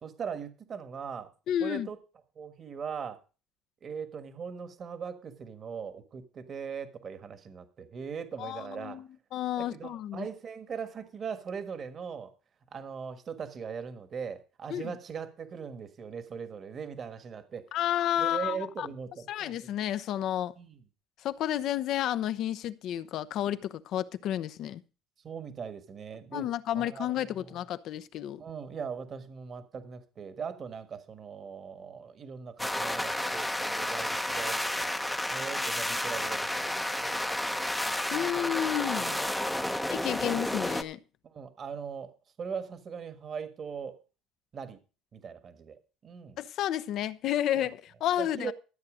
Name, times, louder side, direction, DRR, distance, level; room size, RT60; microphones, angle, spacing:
voice 1, 0.0-1.3 1.6-2.0 2.3-3.2 3.8-9.0 9.6-12.3 12.7-17.7 18.2-19.7 20.6-20.8 25.2-27.6 28.4-34.9 35.3-37.1 37.5-38.5 38.9-39.3 39.5-39.9 41.2-42.1 42.4-44.0 44.5-44.8 45.1-46.4 47.5-47.7 48.2-48.5, right 6 dB, 35° right, 1.5 m, -40 dB
voice 2, 1.5-1.9 8.4-10.3 14.7-14.9 17.7-18.9 19.3-20.5 21.2-24.8 26.3-28.4 38.1-39.2 39.9-41.0 46.4-48.5, left 11 dB, 55° left, 0.8 m, -31 dB
sound 1, 32.6-40.8, left 1 dB, 5° left, 0.8 m, -31 dB
13.5 x 8.3 x 5.0 m
cardioid pair, 145°, 0 cm